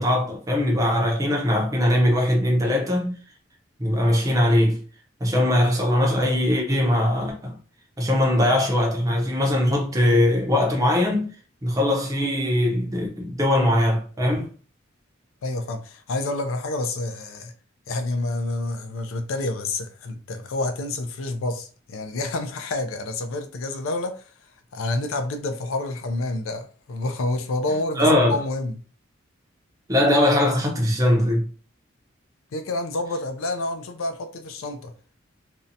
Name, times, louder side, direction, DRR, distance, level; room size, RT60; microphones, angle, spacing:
voice 1, 0.0-3.1 3.8-4.8 5.2-7.6 8.0-11.3 11.6-14.5 28.0-28.4 29.9-31.4, left 1 dB, 15° right, 0.6 m, -21 dB
voice 2, 15.4-17.5 17.9-24.2 24.7-28.8 32.5-34.9, left 2 dB, 85° left, 0.4 m, -28 dB
2.6 x 2.1 x 2.6 m
head